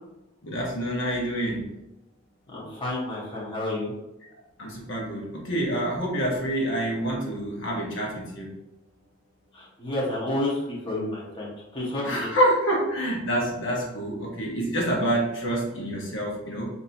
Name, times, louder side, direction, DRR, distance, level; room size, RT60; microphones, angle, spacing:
voice 1, 0.4-1.6 4.6-8.5 12.0-16.7, right 1 dB, 65° left, -3 dB, 1.1 m, -27 dB
voice 2, 2.5-3.9 9.5-12.3, left 1 dB, 25° left, -5 dB, 1.1 m, -30 dB
6.0 x 2.8 x 2.7 m, 0.91 s
head